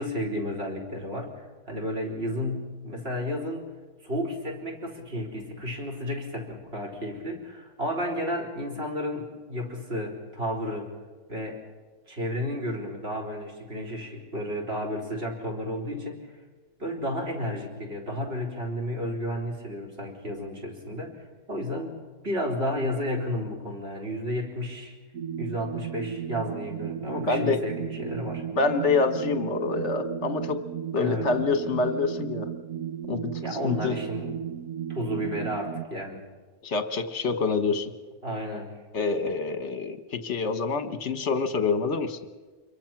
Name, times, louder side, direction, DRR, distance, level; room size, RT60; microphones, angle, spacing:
voice 1, 0.0-1.4 1.7-3.7 4.0-10.9 11.3-11.6 12.1-16.2 16.8-22.0 22.2-24.9 25.4-28.4 31.0-31.2 33.4-34.3 34.9-36.2 38.2-38.7, equal, 35° right, 2 dB, 4.2 m, -32 dB
sound 1, 25.1-35.9, right 8 dB, 60° right, 1.2 m, -35 dB
voice 2, 27.3-27.6 28.6-30.6 30.9-32.5 33.1-33.3 33.6-34.0 36.6-37.9 38.9-42.2, left 4 dB, 45° left, 9 dB, 1.5 m, -26 dB
26.5 x 22.5 x 6.0 m, 1.4 s
omnidirectional pair, 1.8 m